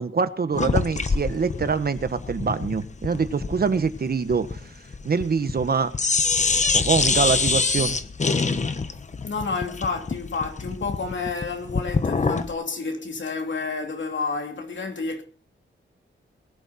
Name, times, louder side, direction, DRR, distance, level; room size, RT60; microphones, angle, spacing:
voice 1, 0.0-4.6 5.0-5.9 6.7-8.0, right 5 dB, 45° right, 1.3 m, -24 dB
sound 1, 0.5-5.7 5.9-12.5, left 4 dB, 35° left, 1.1 m, -25 dB
voice 2, 9.2-15.2, left 4 dB, 65° left, 3.0 m, -30 dB
21.0 x 11.5 x 4.2 m
wide cardioid pair, 130°, 21 cm